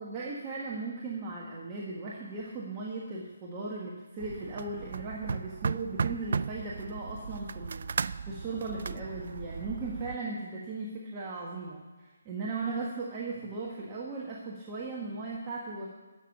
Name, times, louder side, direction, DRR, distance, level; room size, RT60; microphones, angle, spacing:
voice 1, 0.0-15.9, right 3 dB, 25° right, -4 dB, 1.4 m, -37 dB
sound 1, 4.2-10.2, right 5 dB, 60° right, 0.3 m, -36 dB
12.0 x 7.1 x 7.8 m, 1.2 s
figure-of-eight pair, 150°, 0 cm